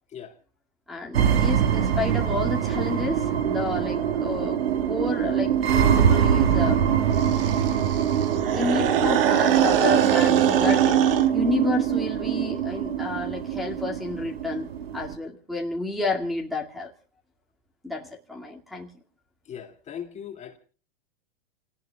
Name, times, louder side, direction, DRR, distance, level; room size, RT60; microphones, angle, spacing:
voice 1, 0.9-4.6 4.9-6.8 8.5-11.0 11.3-14.7 14.9-16.9 17.8-18.9, left 3 dB, ahead, 2.1 m, -30 dB
sound 1, 1.1-15.1, right 9 dB, 80° right, 1.8 m, -23 dB
sound 2, 7.1-11.3, right 9 dB, 65° right, 1.8 m, -25 dB
voice 2, 19.5-20.6, left 8 dB, 20° left, 2.3 m, -39 dB
30.0 x 18.0 x 2.3 m
hypercardioid pair, 135°, 30 cm